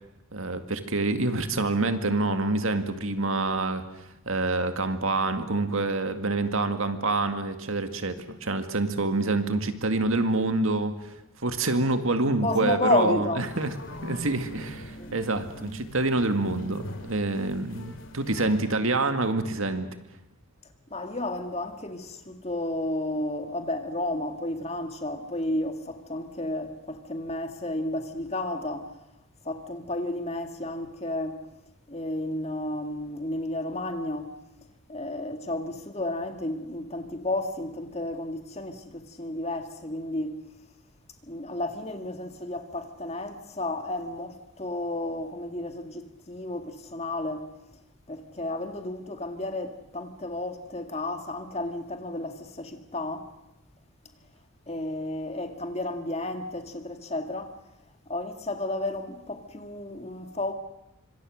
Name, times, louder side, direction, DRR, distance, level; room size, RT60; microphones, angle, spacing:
voice 1, 0.3-3.8 4.3-11.1 11.4-13.7 14.0-19.9, right 2 dB, 70° right, 2.1 m, -27 dB
voice 2, 12.4-13.4 14.2-14.3 14.9-15.3 20.9-28.9 29.4-31.4 31.9-34.4 34.9-40.4 41.2-47.5 48.1-53.3 54.7-57.6 58.1-60.5, left 1 dB, 30° left, 2.1 m, -32 dB
sound 1, 13.4-18.6, equal, 60° left, 3.2 m, -42 dB
25.5 x 25.0 x 6.5 m
head